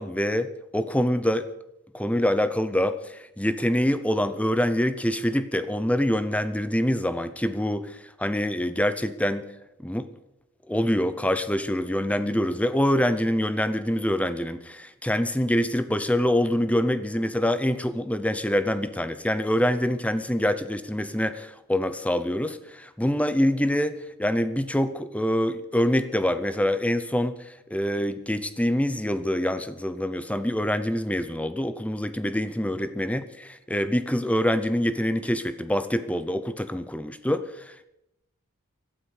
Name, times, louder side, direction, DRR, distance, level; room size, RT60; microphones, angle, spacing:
voice 1, 0.0-1.5 1.9-9.5 9.8-10.1 10.7-37.9, equal, 5° left, 12 dB, 0.8 m, -25 dB
17.0 x 12.5 x 6.5 m, 0.85 s
head